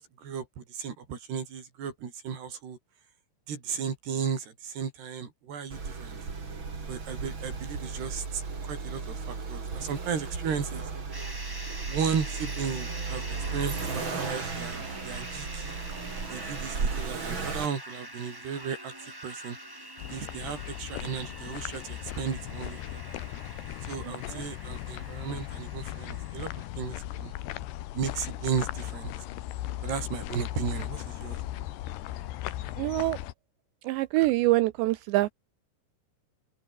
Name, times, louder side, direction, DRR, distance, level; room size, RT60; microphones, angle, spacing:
voice 1, 0.0-2.8 3.5-6.2 6.9-10.8 11.9-15.8 16.3-18.9 19.2-19.6 20.1-22.8 23.8-26.5 26.8-27.3 27.9-29.1 29.8-31.4, right 7 dB, 60° right, 6.0 m, -35 dB
Accelerating revving vroom, 5.7-17.7, right 4 dB, 30° right, 3.4 m, -35 dB
sound 1, 11.1-26.7, right 1 dB, 5° right, 3.3 m, -44 dB
sound 2, 20.0-33.3, left 14 dB, 70° left, 3.0 m, -37 dB
voice 2, 32.8-33.2 33.8-35.3, right 18 dB, 80° right, 2.7 m, -25 dB
open air
omnidirectional pair, 5.6 m